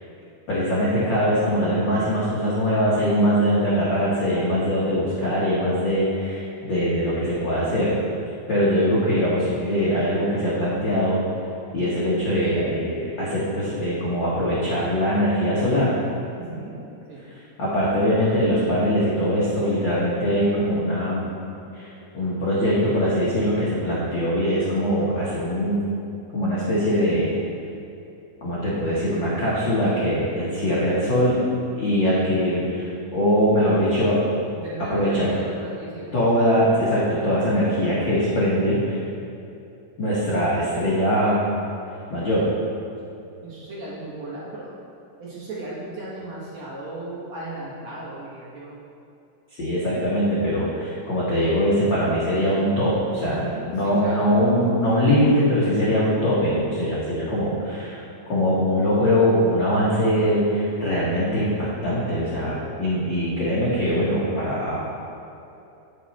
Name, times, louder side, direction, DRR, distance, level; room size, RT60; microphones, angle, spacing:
voice 1, 0.5-8.0 8.5-11.2 11.7-16.0 17.3-21.3 21.7-25.9 26.3-27.4 28.4-31.4 31.8-34.3 34.9-35.3 36.1-39.0 40.0-41.4 42.1-42.5 49.6-58.0 58.3-64.8, equal, 65° left, -8 dB, 1.1 m, -22 dB
voice 2, 16.4-16.7 17.1-17.3 34.5-36.2 43.4-44.7 45.2-48.8 53.2-54.4, right 2 dB, 60° right, -7 dB, 2.2 m, -36 dB
8.8 x 6.2 x 4.2 m, 2.8 s
omnidirectional pair, 4.2 m